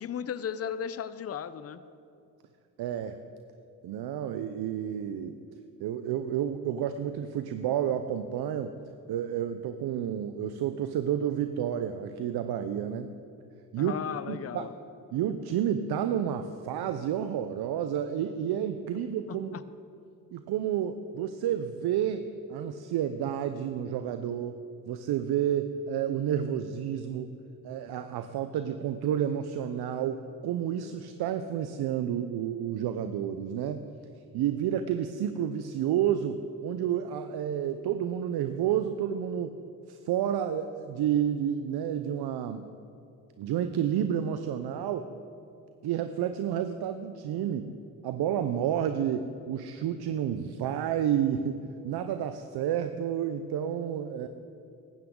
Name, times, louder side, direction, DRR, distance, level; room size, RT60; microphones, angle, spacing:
voice 1, 0.0-1.8 13.8-14.7 19.3-19.6, left 8 dB, 35° left, 13 dB, 0.7 m, -35 dB
voice 2, 2.8-3.2 3.8-5.4 5.8-8.7 9.1-13.1 13.7-14.0 14.3-14.7 15.1-19.5 20.3-24.6 24.9-27.3 27.6-33.9 34.3-39.5 39.9-42.7 43.4-45.1 45.8-47.7 48.0-54.3, right 9 dB, 70° right, 9 dB, 0.7 m, -30 dB
16.0 x 12.5 x 3.8 m, 2.5 s
supercardioid pair, 60°, 40 cm